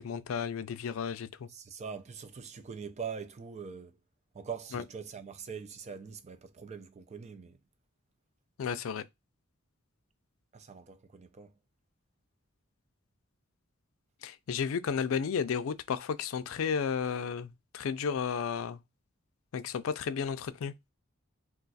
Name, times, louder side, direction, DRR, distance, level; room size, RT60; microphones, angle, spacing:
voice 1, 0.0-1.5 4.7-4.8 8.6-9.0 14.2-18.8 19.5-20.7, left 6 dB, 80° left, 0.4 m, -33 dB
voice 2, 1.5-4.0 4.3-7.6 10.5-11.5, right 6 dB, 35° right, 0.4 m, -43 dB
2.4 x 2.3 x 3.9 m
head